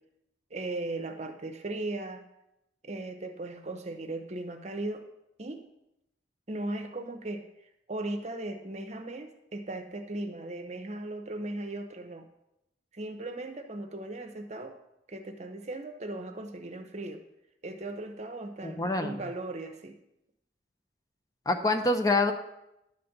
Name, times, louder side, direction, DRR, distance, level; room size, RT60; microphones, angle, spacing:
voice 1, 0.5-2.2 2.8-5.1 5.4-5.6 6.5-7.5 7.9-12.3 12.9-14.7 15.1-17.2 17.6-20.0, right 2 dB, 40° right, 6 dB, 0.9 m, -37 dB
voice 2, 18.6-19.2 21.5-22.3, left 2 dB, 20° left, 5 dB, 0.7 m, -26 dB
11.0 x 4.2 x 6.6 m, 0.85 s
head